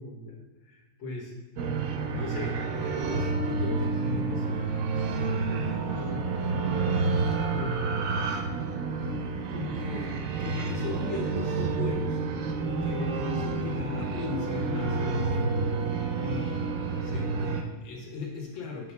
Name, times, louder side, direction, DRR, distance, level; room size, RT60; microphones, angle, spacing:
voice 1, 0.0-1.4 2.0-8.3 9.5-12.2 12.6-18.9, left 4 dB, 80° left, -2 dB, 1.9 m, -38 dB
sound 1, 1.6-17.6, right 4 dB, 70° right, 0.8 m, -29 dB
5.1 x 3.4 x 5.7 m, 1.3 s
omnidirectional pair, 2.0 m